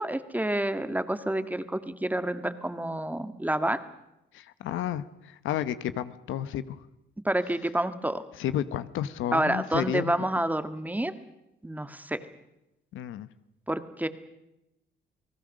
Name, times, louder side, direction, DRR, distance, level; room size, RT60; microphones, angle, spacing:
voice 1, 0.0-3.8 7.2-8.2 9.3-11.1 11.6-12.2 13.7-14.1, right 1 dB, 10° right, 11 dB, 1.7 m, -28 dB
voice 2, 4.3-6.8 8.3-10.3 12.9-13.3, left 11 dB, 80° left, 14 dB, 1.0 m, -32 dB
29.5 x 19.0 x 6.5 m, 0.89 s
cardioid pair, 90°, 20 cm